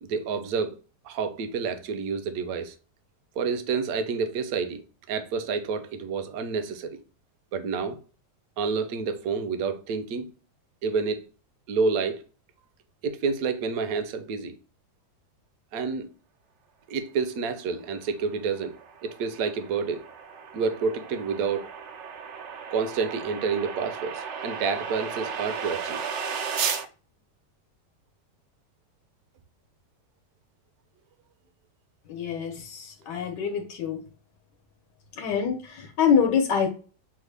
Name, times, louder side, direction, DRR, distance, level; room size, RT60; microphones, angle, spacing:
voice 1, 0.0-0.8 1.0-2.7 3.4-4.8 5.1-7.0 7.5-8.0 8.6-10.3 10.8-11.2 11.7-12.2 13.0-14.6 15.7-16.1 16.9-18.7 19.0-20.0 20.5-21.7 22.7-26.0, right 5 dB, 65° right, 1.0 m, -29 dB
sound 1, 18.2-26.9, right 6 dB, 80° right, 0.6 m, -35 dB
voice 2, 32.1-34.0 35.2-36.7, left 7 dB, 75° left, 1.4 m, -25 dB
6.2 x 2.1 x 3.3 m
omnidirectional pair, 1.9 m